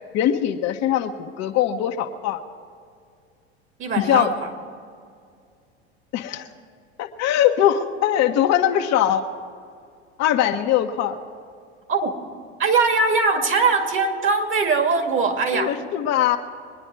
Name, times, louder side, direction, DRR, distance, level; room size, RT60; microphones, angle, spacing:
voice 1, 0.1-2.4 4.0-4.3 6.1-6.5 7.0-9.2 10.2-11.2 15.5-16.4, left 11 dB, 50° left, 5 dB, 1.2 m, -21 dB
voice 2, 3.8-4.5 11.9-12.1 12.6-15.7, right 4 dB, 35° right, 5 dB, 2.2 m, -21 dB
23.0 x 9.9 x 4.7 m, 2.3 s
hypercardioid pair, 85°, 33 cm